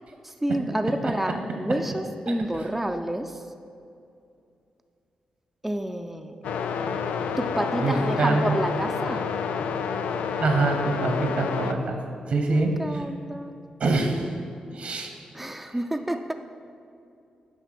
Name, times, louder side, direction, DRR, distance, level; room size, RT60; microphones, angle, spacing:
voice 1, 0.2-3.4 5.6-6.4 7.4-9.3 11.6-11.7 12.5-13.5 15.3-16.3, right 1 dB, 10° right, 6 dB, 0.4 m, -29 dB
sound 1, 6.4-11.7, left 6 dB, 90° left, 0.3 m, -29 dB
voice 2, 7.8-8.5 10.4-12.0 12.3-12.7 13.8-14.2 14.7-15.1, right 3 dB, 65° right, 3 dB, 1.0 m, -24 dB
10.0 x 3.4 x 5.9 m, 2.5 s
cardioid pair, 90°, 2 cm